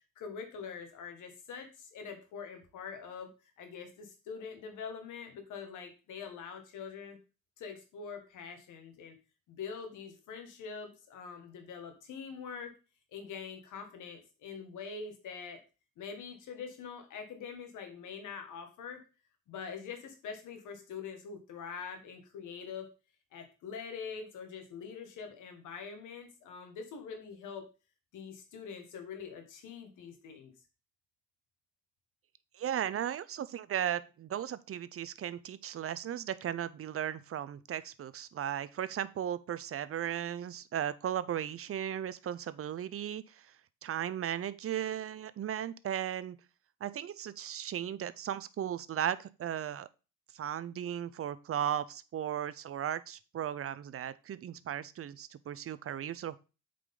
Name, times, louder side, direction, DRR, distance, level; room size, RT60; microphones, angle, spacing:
voice 1, 0.2-3.3 3.6-7.2 7.6-9.2 9.5-12.7 13.1-15.6 16.0-19.0 19.5-22.9 23.3-27.7 28.1-30.5, left 6 dB, 80° left, 5 dB, 1.9 m, -44 dB
voice 2, 32.5-43.5 43.8-46.4 46.8-49.9 50.3-56.4, right 10 dB, 50° right, 16 dB, 0.6 m, -36 dB
7.8 x 5.1 x 3.8 m, 0.31 s
cardioid pair, 90°, 30 cm